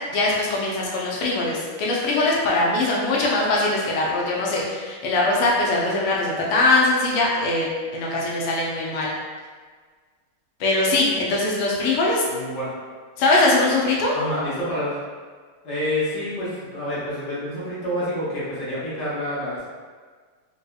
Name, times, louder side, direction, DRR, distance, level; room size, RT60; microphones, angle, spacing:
voice 1, 0.1-9.1 10.6-12.2 13.2-14.1, left 2 dB, 85° left, -4 dB, 1.6 m, -21 dB
voice 2, 12.2-12.8 14.1-15.0 15.6-19.6, left 1 dB, 55° left, -10 dB, 1.5 m, -28 dB
3.9 x 2.8 x 2.2 m, 1.5 s
omnidirectional pair, 2.4 m